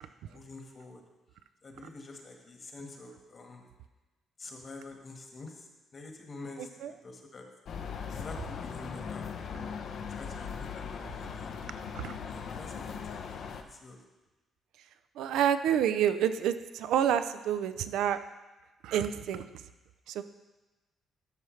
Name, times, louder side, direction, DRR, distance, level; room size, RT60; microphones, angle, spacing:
voice 1, 0.3-1.0 1.6-3.7 4.4-6.7 7.0-7.5 8.1-9.7 10.1-11.5 12.3-13.2 13.7-14.0, left 3 dB, 40° left, 2 dB, 1.5 m, -47 dB
voice 2, 6.6-6.9 12.0-12.2 15.2-18.2 18.8-19.5 20.1-20.2, right 9 dB, 85° right, 11 dB, 0.4 m, -28 dB
sound 1, 7.7-13.6, left 6 dB, 65° left, 0.6 m, -39 dB
12.0 x 5.6 x 3.2 m, 1.1 s
cardioid pair, 90°, 0 cm